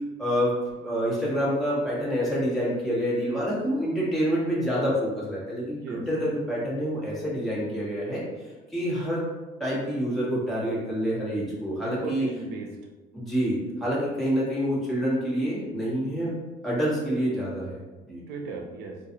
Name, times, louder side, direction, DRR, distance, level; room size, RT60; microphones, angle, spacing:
voice 1, 0.2-0.5 0.8-8.2 8.7-9.3 9.6-12.3 13.1-17.8 18.1-18.2, equal, ahead, -8 dB, 1.4 m, -27 dB
voice 2, 11.8-12.7 18.3-19.0, right 4 dB, 80° right, 2 dB, 0.6 m, -37 dB
3.9 x 2.4 x 2.8 m, 1.2 s
cardioid pair, 110°, 17 cm